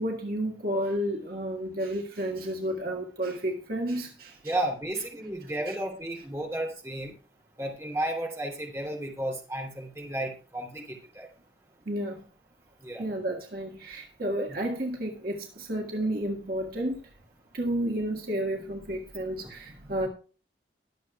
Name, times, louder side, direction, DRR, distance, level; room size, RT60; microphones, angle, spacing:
voice 1, 0.0-4.6 4.9-5.1 5.4-5.8 6.2-6.3 11.9-12.2 13.0-17.0 17.5-20.1, right 1 dB, 50° right, 1 dB, 1.7 m, -31 dB
voice 2, 4.4-7.1 7.6-11.3 12.8-13.0, right 1 dB, 15° right, 1 dB, 3.0 m, -33 dB
22.0 x 7.5 x 2.3 m, 0.36 s
head